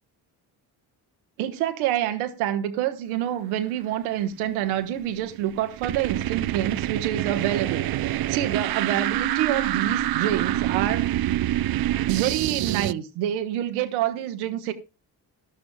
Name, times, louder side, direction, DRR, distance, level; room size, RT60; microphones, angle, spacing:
voice 1, 1.4-11.4 12.1-14.7, right 11 dB, 85° right, 1.5 m, -27 dB
sound 1, 4.8-12.9, right 14 dB, 50° right, 0.6 m, -26 dB
17.0 x 12.0 x 2.3 m
hypercardioid pair, 50°, 47 cm